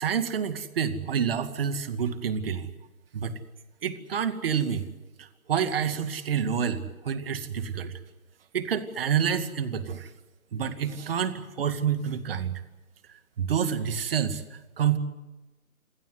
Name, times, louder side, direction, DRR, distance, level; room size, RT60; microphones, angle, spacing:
voice 1, 0.0-2.7 3.1-3.4 3.8-4.9 5.2-7.9 8.5-10.1 10.5-12.6 13.4-14.4 14.8-15.0, right 7 dB, 40° right, 10 dB, 2.3 m, -28 dB
28.0 x 20.5 x 8.1 m, 1.1 s
figure-of-eight pair, 145°, 42 cm